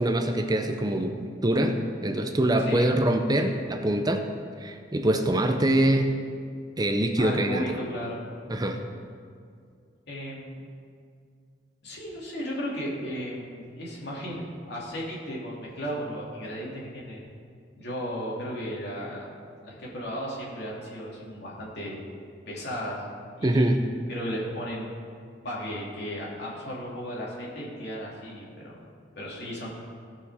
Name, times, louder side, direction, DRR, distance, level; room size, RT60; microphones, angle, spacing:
voice 1, 0.0-4.2 4.6-6.1 6.8-7.8 8.5-8.8 23.4-23.8, right 1 dB, 20° right, 5 dB, 0.6 m, -24 dB
voice 2, 7.2-8.2 10.1-10.6 11.8-17.2 17.7-19.3 19.6-22.0 22.5-23.0 23.3-23.8 24.1-24.9 25.4-28.8 29.2-29.7, equal, 65° left, -4 dB, 2.8 m, -35 dB
17.0 x 5.8 x 4.9 m, 2.2 s
head